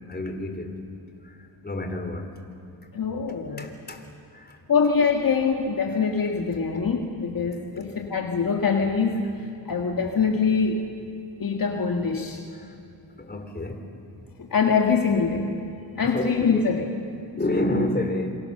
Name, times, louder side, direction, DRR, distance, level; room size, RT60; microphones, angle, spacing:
voice 1, 0.1-0.7 1.6-2.3 3.6-4.0 4.3-4.5 13.2-13.8 16.0-16.6 17.3-18.4, left 1 dB, 20° left, 5 dB, 3.6 m, -28 dB
voice 2, 2.9-3.7 4.7-10.8 11.4-12.4 14.4-15.5 16.0-16.9, left 5 dB, 50° left, 2 dB, 2.0 m, -24 dB
27.0 x 25.0 x 6.9 m, 2.5 s
cardioid pair, 75°, 43 cm